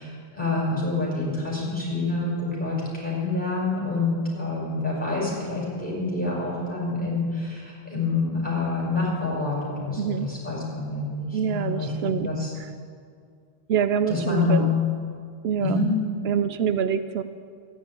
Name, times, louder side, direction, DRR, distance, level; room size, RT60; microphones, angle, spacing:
voice 1, 0.0-12.5 14.1-14.9 15.6-15.9, left 3 dB, 10° left, -6 dB, 5.4 m, -27 dB
voice 2, 10.0-10.3 11.3-12.3 12.6-12.7 13.7-14.7 15.4-15.8 16.2-17.2, right 8 dB, 80° right, 11 dB, 0.8 m, -25 dB
14.0 x 10.5 x 8.5 m, 2.2 s
omnidirectional pair, 1.0 m